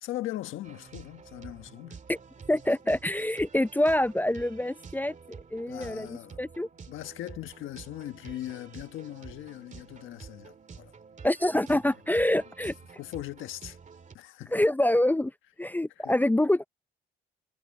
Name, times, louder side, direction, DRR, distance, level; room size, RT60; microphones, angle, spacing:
voice 1, 0.0-2.0 5.7-6.4 6.9-10.9 13.0-13.8 14.1-14.5 16.0-16.1, left 14 dB, 85° left, 1.4 m, -39 dB
sound 1, 0.6-14.1, right 5 dB, 40° right, 2.0 m, -49 dB
voice 2, 2.5-6.7 11.2-12.7 14.5-15.3 15.6-16.7, left 1 dB, 10° left, 0.5 m, -26 dB
cardioid pair, 90°, 20 cm